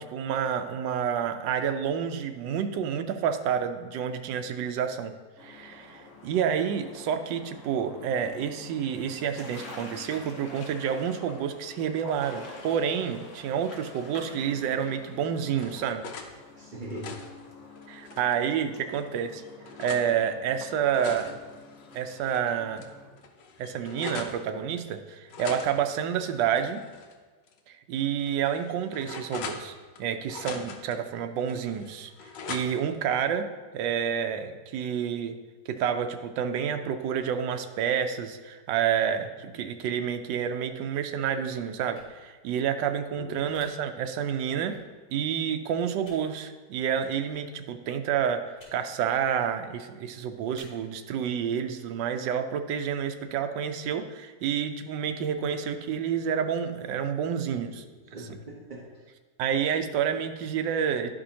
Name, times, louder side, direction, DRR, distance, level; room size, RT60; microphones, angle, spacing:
voice 1, 0.0-5.1 5.4-16.1 17.9-19.4 19.8-21.4 21.9-22.9 23.6-26.8 27.7-29.7 30.0-32.1 32.5-33.5 33.7-35.4 35.7-44.8 45.1-57.8 58.2-58.3 59.4-61.1, right 8 dB, 80° right, 7 dB, 1.3 m, -29 dB
sound 1, 5.4-23.1, left 3 dB, 50° left, 1.2 m, -47 dB
sound 2, 15.0-16.3 16.8-18.4 19.0-20.1 20.7-22.4 22.8-22.9 23.2-24.4 25.3-27.1 27.5-27.6 28.2-30.0 30.3-31.0 31.5-33.0, left 4 dB, 80° left, 1.4 m, -42 dB
voice 2, 16.6-17.1 43.2-43.5 57.6-58.8, right 1 dB, 40° right, -4 dB, 0.7 m, -41 dB
sound 3, 41.9-42.1 43.5-43.7 44.7-44.8 46.0-46.2 47.2-47.4 48.5-48.7 49.3-49.5 50.5-50.6, left 1 dB, 25° left, 2.4 m, -53 dB
11.5 x 5.1 x 2.8 m, 1.4 s
omnidirectional pair, 1.9 m